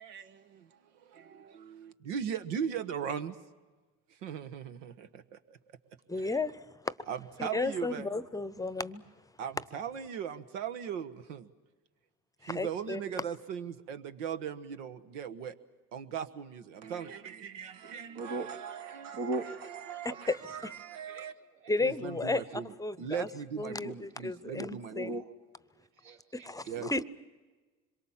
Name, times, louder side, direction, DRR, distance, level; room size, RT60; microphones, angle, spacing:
voice 1, 0.0-3.4 4.1-5.6 6.2-6.4 7.1-8.1 9.4-11.5 12.4-15.5 15.9-21.3 21.8-25.2 26.7-26.9, right 8 dB, 85° right, 9 dB, 1.3 m, -39 dB
voice 2, 6.1-7.0 7.4-9.1 12.4-13.0 20.3-20.7 21.7-23.3 23.6-25.1 26.3-27.0, left 3 dB, 10° left, 17 dB, 0.8 m, -34 dB
voice 3, 18.1-18.5 19.1-19.7 20.1-20.2 21.1-21.3 23.7-23.9 24.5-25.2 26.0-26.5 26.8-27.0, right 2 dB, 60° right, 5 dB, 2.4 m, -38 dB
26.0 x 23.0 x 7.3 m, 1.3 s
supercardioid pair, 80°, 36 cm